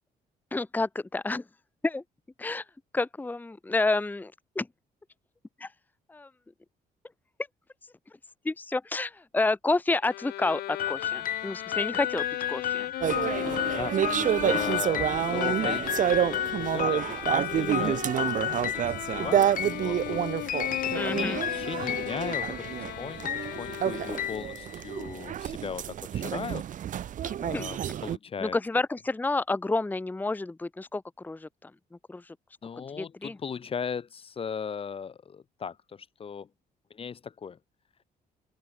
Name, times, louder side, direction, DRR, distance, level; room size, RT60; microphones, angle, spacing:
voice 1, 0.5-1.4 1.8-2.0 2.4-2.6 2.9-4.7 5.6-5.7 6.1-6.3 8.4-12.9 20.9-21.4 27.2-27.6 28.4-31.7 32.1-32.2 33.0-33.4, left 3 dB, 10° left, 0.9 m, -29 dB
Bowed string instrument, 10.0-24.7, left 15 dB, 85° left, 2.4 m, -37 dB
sound 1, 10.8-25.2, left 10 dB, 60° left, 1.9 m, -34 dB
sound 2, 13.0-28.2, right 10 dB, 55° right, 0.9 m, -29 dB
voice 2, 13.8-20.3 21.1-26.7 27.4-28.6 32.6-36.5 36.9-37.6, left 6 dB, 35° left, 1.1 m, -38 dB
cardioid pair, 110°, 16 cm